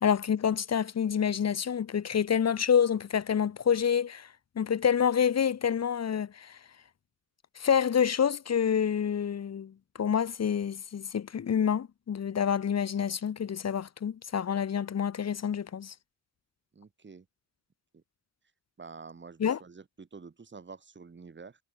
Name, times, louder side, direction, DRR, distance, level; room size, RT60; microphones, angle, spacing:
voice 1, 0.0-4.3 4.6-6.6 7.6-9.7 10.0-15.9 19.4-19.6, left 8 dB, 55° left, 2.0 m, -27 dB
voice 2, 16.7-17.2 17.9-18.0 18.8-21.6, right 5 dB, 35° right, 8.0 m, -48 dB
wide cardioid pair, 115°, 31 cm